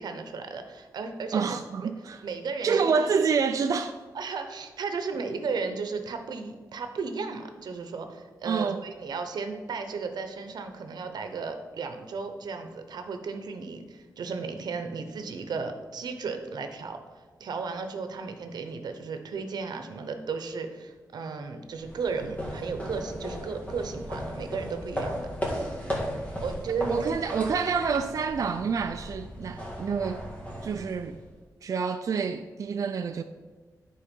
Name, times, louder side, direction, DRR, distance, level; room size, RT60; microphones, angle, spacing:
voice 1, 0.0-1.9 2.2-3.1 4.1-17.0 17.4-25.3 26.4-27.1, right 4 dB, 90° right, 0.8 m, -34 dB
voice 2, 1.3-2.2 2.6-3.9 8.4-8.8 26.9-30.2 30.6-31.2 31.6-33.2, right 5 dB, 55° right, 0.3 m, -27 dB
sound 1, 21.7-31.4, equal, 20° left, 1.8 m, -36 dB
10.0 x 4.7 x 5.3 m
wide cardioid pair, 130°, 7 cm